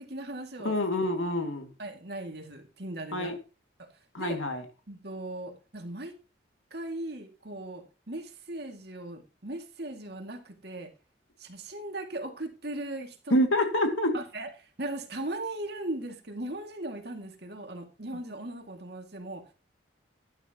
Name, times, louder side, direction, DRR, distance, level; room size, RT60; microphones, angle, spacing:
voice 1, 0.0-0.8 1.8-3.3 3.8-3.9 4.2-4.4 4.9-6.1 6.7-10.9 11.4-13.4 14.1-19.5, right 1 dB, 55° right, 2.4 m, -38 dB
voice 2, 0.6-1.7 3.1-3.4 4.1-4.6 13.3-14.2, left 1 dB, 90° left, 2.4 m, -26 dB
12.0 x 11.5 x 3.0 m
head